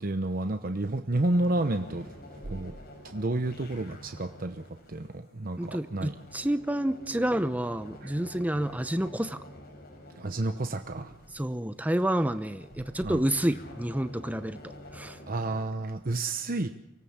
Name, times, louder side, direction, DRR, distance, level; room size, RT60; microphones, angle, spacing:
voice 1, 0.0-2.1 2.4-2.7 3.0-6.2 8.0-8.1 10.2-11.1 12.8-13.2 15.3-16.7, right 2 dB, 50° right, 7 dB, 0.9 m, -30 dB
sound 1, 1.1-15.6, left 1 dB, 55° left, 4.5 m, -49 dB
voice 2, 5.6-9.4 11.3-15.2, right 1 dB, 10° right, 10 dB, 0.8 m, -29 dB
25.0 x 18.0 x 7.3 m, 0.81 s
head